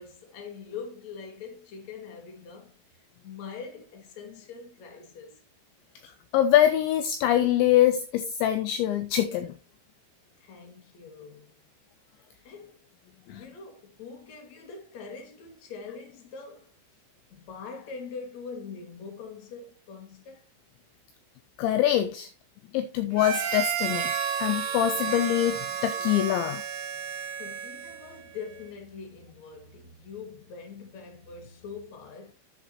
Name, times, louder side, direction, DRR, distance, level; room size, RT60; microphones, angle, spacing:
voice 1, 0.0-2.8 3.2-5.4 10.4-11.6 12.4-12.8 13.3-16.7 17.3-20.5 27.4-32.3, left 5 dB, 45° left, 3.0 m, -43 dB
voice 2, 6.3-9.5 13.3-13.4 21.6-22.3 22.7-24.1 24.4-26.6, left 12 dB, 80° left, 2.9 m, -24 dB
Harmonica, 23.1-28.2, right 7 dB, 65° right, 3.6 m, -32 dB
10.5 x 8.0 x 3.1 m
omnidirectional pair, 5.6 m